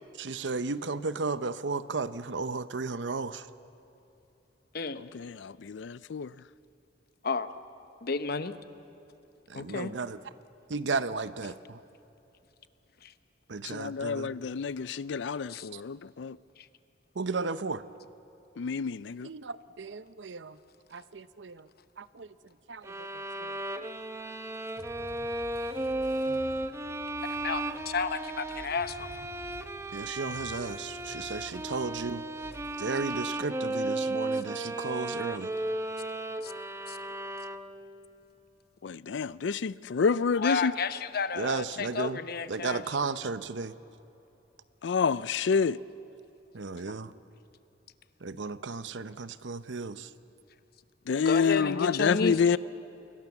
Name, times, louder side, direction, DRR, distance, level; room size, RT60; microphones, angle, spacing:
voice 1, 0.2-3.5 9.5-10.2 10.7-11.8 13.5-14.3 15.7-15.8 17.2-17.8 19.2-20.6 20.9-21.7 22.0-22.3 22.7-23.1 23.4-23.6 29.9-32.2 32.8-35.5 41.3-42.2 42.5-43.7 46.5-47.1 48.2-50.1, right 4 dB, 80° right, 0.8 m, -34 dB
voice 2, 5.0-6.3 13.6-16.4 18.6-19.3 38.8-40.7 44.8-45.8 51.1-52.6, left 5 dB, 80° left, 0.4 m, -28 dB
voice 3, 8.0-8.5 9.5-9.9 13.0-13.1 15.5-15.7 16.6-16.7 27.3-29.1 36.4-36.5 36.9-37.0 40.4-42.8 51.1-52.6, left 4 dB, 60° left, 0.9 m, -32 dB
sound 1, 22.8-38.0, right 2 dB, 15° right, 0.8 m, -35 dB
sound 2, 24.8-32.0 32.3-32.8, left 1 dB, 15° left, 7.4 m, -51 dB
28.0 x 22.0 x 7.2 m
head